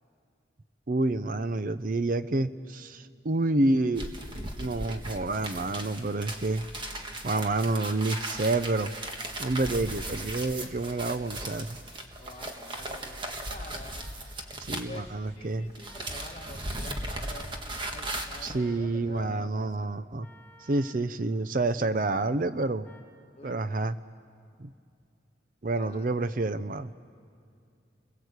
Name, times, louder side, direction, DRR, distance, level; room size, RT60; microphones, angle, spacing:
voice 1, 0.9-4.1 4.6-6.6 7.2-8.9 9.4-11.8 14.6-15.7 18.4-20.3 20.6-22.9 23.4-24.0 24.6-24.7 25.6-26.9, right 2 dB, 45° right, 12 dB, 0.6 m, -28 dB
sound 1, 3.9-15.4 15.7-18.6, right 1 dB, 25° right, 1.6 m, -37 dB
sound 2, 10.0-10.1 11.4-11.5 12.3-12.6 13.9-14.2 15.8-16.5 18.6-18.9 20.2-21.1 22.8-23.1, equal, 10° left, 3.9 m, -57 dB
voice 2, 12.2-14.1 14.9-19.9 21.8-22.2 23.4-23.9 25.7-26.1, left 1 dB, 30° left, 2 dB, 1.9 m, -48 dB
30.0 x 21.5 x 8.1 m, 2.4 s
head